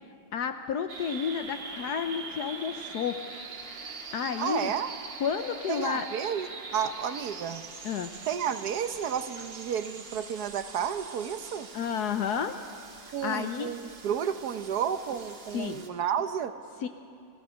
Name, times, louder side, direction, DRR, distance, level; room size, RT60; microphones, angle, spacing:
voice 1, 0.3-3.2 3.8-4.7 5.2-6.1 7.8-8.1 11.7-12.6 13.0-13.7 15.5-15.8 16.8-16.9, left 7 dB, 65° left, 8 dB, 1.2 m, -31 dB
sound 1, 0.9-15.9, right 4 dB, 85° right, 2.4 m, -43 dB
voice 2, 4.4-4.9 5.7-7.6 8.3-11.7 13.1-16.5, right 8 dB, 65° right, 10 dB, 1.3 m, -31 dB
29.5 x 16.5 x 6.3 m, 2.6 s
omnidirectional pair, 1.9 m